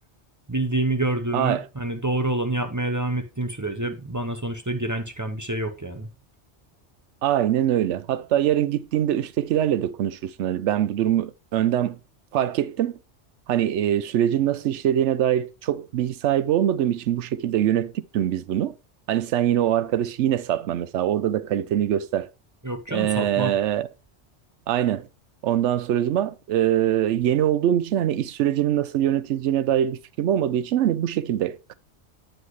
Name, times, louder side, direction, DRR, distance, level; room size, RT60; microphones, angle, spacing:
voice 1, 0.5-6.1 22.6-23.5, right 2 dB, 20° right, 0.5 m, -27 dB
voice 2, 1.3-1.6 7.2-12.0 12.3-13.0 13.5-18.8 19.1-22.3 22.9-23.9 24.7-25.1 25.4-31.7, right 11 dB, 85° right, 0.9 m, -23 dB
7.9 x 7.8 x 3.1 m
omnidirectional pair, 1.2 m